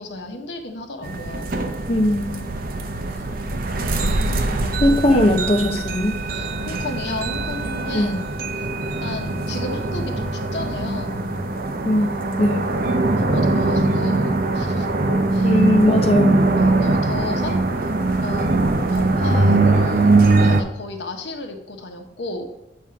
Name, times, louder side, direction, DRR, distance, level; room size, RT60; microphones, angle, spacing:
voice 1, 0.0-1.5 3.7-5.1 6.3-8.2 9.0-11.2 13.2-14.9 15.3-15.5 16.6-17.9 18.2-18.5 18.9-22.5, left 2 dB, 90° left, 4 dB, 1.0 m, -33 dB
sound 1, 1.0-20.6, right 2 dB, 55° right, 0.6 m, -21 dB
voice 2, 1.9-2.5 4.8-6.2 7.9-8.2 11.8-12.7 15.4-16.5, left 1 dB, 35° left, 3 dB, 0.6 m, -19 dB
7.7 x 3.6 x 5.6 m, 0.94 s
head